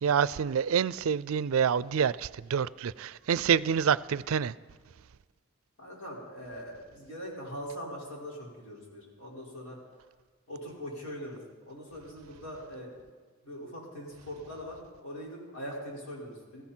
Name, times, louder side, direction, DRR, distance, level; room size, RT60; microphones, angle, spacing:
voice 1, 0.0-4.5, right 7 dB, 70° right, 0.4 m, -27 dB
voice 2, 5.8-9.8 10.5-12.9 13.4-16.6, equal, 85° left, 5.2 m, -42 dB
21.5 x 15.0 x 4.5 m
head